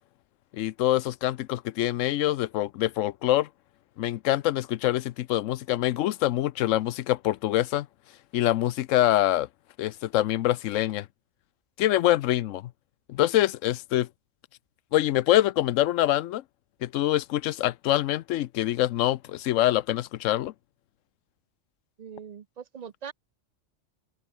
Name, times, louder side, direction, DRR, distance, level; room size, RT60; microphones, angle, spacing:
voice 1, 0.5-3.5 4.0-7.9 8.3-9.5 9.8-11.1 11.8-12.7 13.1-14.1 14.9-16.4 16.8-20.5, left 14 dB, 85° left, 0.9 m, -25 dB
voice 2, 22.0-23.1, right 7 dB, 45° right, 0.5 m, -41 dB
open air
omnidirectional pair, 1.3 m